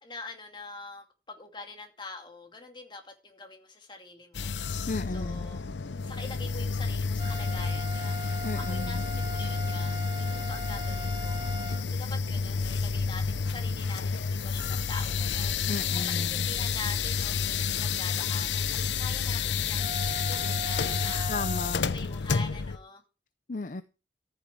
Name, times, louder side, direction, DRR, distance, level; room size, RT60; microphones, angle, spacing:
voice 1, 0.0-4.8 5.1-5.6 6.1-10.0 10.3-11.4 11.8-15.6 15.9-19.9 20.3-21.4 21.9-23.0, left 3 dB, 25° left, 2.5 m, -44 dB
sound 1, 4.3-22.8, left 5 dB, 85° left, 0.7 m, -30 dB
voice 2, 4.9-5.5 8.4-9.0 15.7-16.4 21.3-21.9 23.5-23.8, left 3 dB, 45° left, 0.6 m, -34 dB
sound 2, 7.2-11.8 19.8-21.7, right 2 dB, 25° right, 0.7 m, -39 dB
14.0 x 7.0 x 4.7 m
head